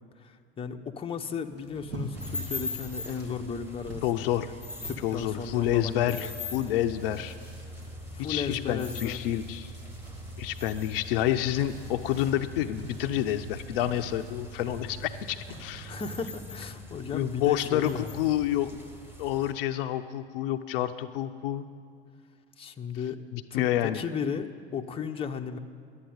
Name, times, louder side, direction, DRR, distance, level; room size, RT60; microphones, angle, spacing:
voice 1, 0.2-4.5 4.8-6.4 8.1-9.2 15.9-18.3 22.6-23.2 23.5-25.6, left 6 dB, 15° left, 5 dB, 0.7 m, -35 dB
sound 1, 1.4-15.6, right 1 dB, 70° right, 3.0 m, -47 dB
sound 2, 2.1-19.5, left 1 dB, 5° right, 1.6 m, -41 dB
voice 2, 4.0-4.5 5.0-7.3 8.2-9.7 10.4-15.9 17.1-18.7 19.2-21.7 23.3-24.0, left 12 dB, 60° left, 9 dB, 0.6 m, -28 dB
11.5 x 9.0 x 8.8 m, 2.2 s
figure-of-eight pair, 80°, 33 cm